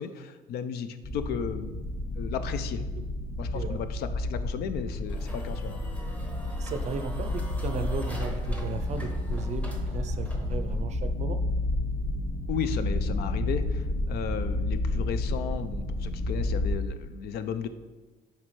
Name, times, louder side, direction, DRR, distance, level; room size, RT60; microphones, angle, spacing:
voice 1, 0.0-1.8 2.2-2.8 3.4-5.8 12.5-17.7, left 7 dB, 70° left, 11 dB, 0.5 m, -34 dB
sound 1, 1.0-16.7, left 2 dB, 55° left, 1.8 m, -31 dB
sound 2, 5.0-10.8, equal, 10° left, 0.9 m, -44 dB
voice 2, 6.5-11.4, right 5 dB, 45° right, 9 dB, 0.5 m, -36 dB
7.3 x 4.4 x 3.2 m, 1.3 s
cardioid pair, 110°, 17 cm